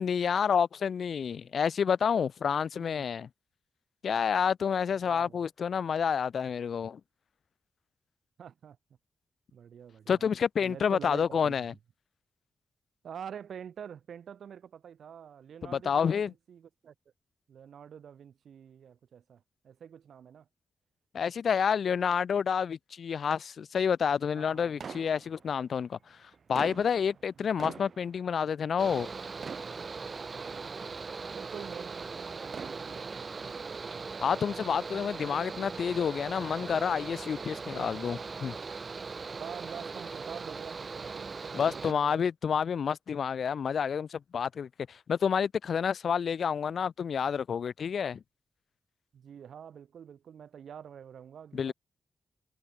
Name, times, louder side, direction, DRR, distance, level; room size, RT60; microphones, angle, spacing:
voice 1, 0.0-3.3 4.0-7.0 10.1-11.7 15.7-16.3 21.1-29.1 34.2-38.5 41.5-48.2 51.5-51.7, left 7 dB, 65° left, 0.8 m, -29 dB
voice 2, 2.7-3.1 5.0-5.4 8.4-8.8 9.5-10.2 10.6-11.7 13.0-16.9 17.5-20.5 24.3-24.8 27.4-27.5 30.3-30.7 31.3-34.1 37.8-38.0 39.4-42.3 49.1-51.7, right 8 dB, 80° right, 2.5 m, -47 dB
sound 1, 24.8-25.8 26.3-29.1 29.4-30.5 31.1-31.2 32.3-33.3, right 6 dB, 55° right, 2.6 m, -44 dB
Mechanical fan, 28.8-41.9, right 4 dB, 40° right, 2.7 m, -40 dB
wide cardioid pair, 105°, 0 cm